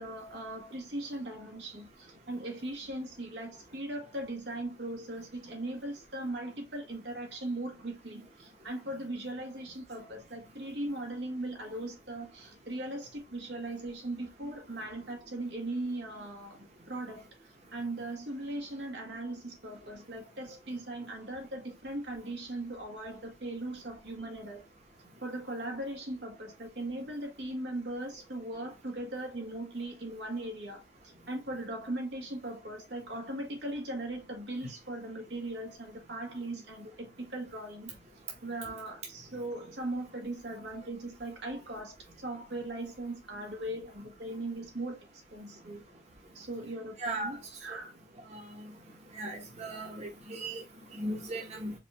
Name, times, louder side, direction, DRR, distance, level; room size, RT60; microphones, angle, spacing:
voice 1, 0.0-16.6 16.9-17.3 17.7-24.6 25.2-30.8 31.3-37.9 38.4-45.0 45.3-45.8 46.3-47.9, right 1 dB, 75° right, 1.6 m, -39 dB
voice 2, 47.0-47.3 48.3-48.4 49.1-50.6 51.0-51.7, right 2 dB, 40° right, 1.3 m, -37 dB
4.9 x 2.6 x 3.5 m
head